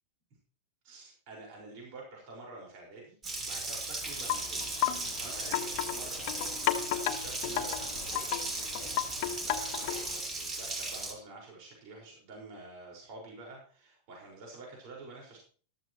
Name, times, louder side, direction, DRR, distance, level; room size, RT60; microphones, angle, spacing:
voice 1, 0.8-3.1 3.4-6.2 6.6-8.5 9.4-15.4, right 2 dB, 45° right, -1 dB, 5.2 m, -48 dB
Water tap faucet, 3.2-11.1, right 2 dB, 20° right, 2.8 m, -37 dB
Wind chime, 4.0-10.2, left 12 dB, 45° left, 1.2 m, -34 dB
14.0 x 13.0 x 3.1 m, 0.43 s
figure-of-eight pair, 90°, 0 cm